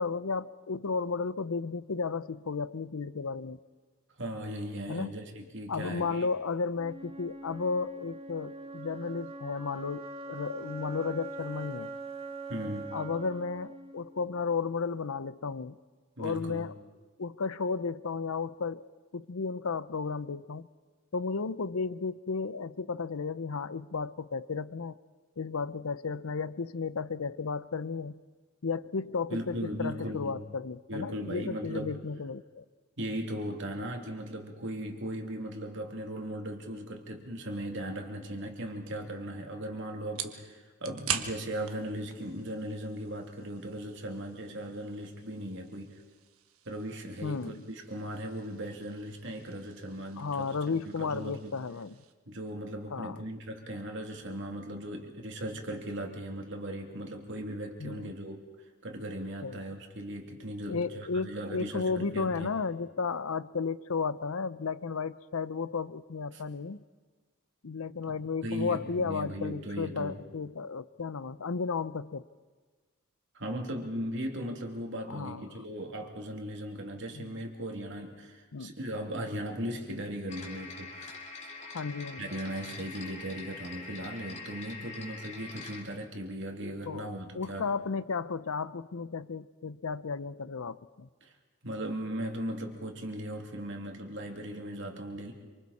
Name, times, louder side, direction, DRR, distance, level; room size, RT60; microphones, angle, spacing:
voice 1, 0.0-3.6 4.9-5.1 5.7-12.0 12.9-15.8 16.2-16.7 17.2-18.9 19.1-20.7 21.1-25.0 25.4-28.2 28.6-32.6 47.2-47.6 50.2-52.0 52.9-53.2 57.8-58.1 59.4-59.6 60.7-66.8 67.6-72.2 75.1-75.6 77.2-77.4 78.5-78.7 81.6-82.3 86.9-87.1 87.3-91.1, left 4 dB, 70° left, 16 dB, 0.6 m, -33 dB
voice 2, 4.2-6.3 12.5-13.0 16.2-16.7 29.3-30.4 30.9-32.0 33.0-46.0 46.7-51.6 52.3-58.4 58.8-62.5 66.3-66.4 68.4-70.2 73.3-81.1 82.2-87.7 91.2-91.3 91.6-95.3, equal, 55° right, 2 dB, 2.8 m, -38 dB
Wind instrument woodwind instrument, 6.8-14.8, right 2 dB, 25° right, 1.9 m, -43 dB
sound 1, 38.9-52.1, right 9 dB, 75° right, 1.4 m, -44 dB
sound 2, 80.3-85.8, left 3 dB, 30° left, 3.2 m, -44 dB
27.5 x 25.5 x 4.2 m, 1.4 s
head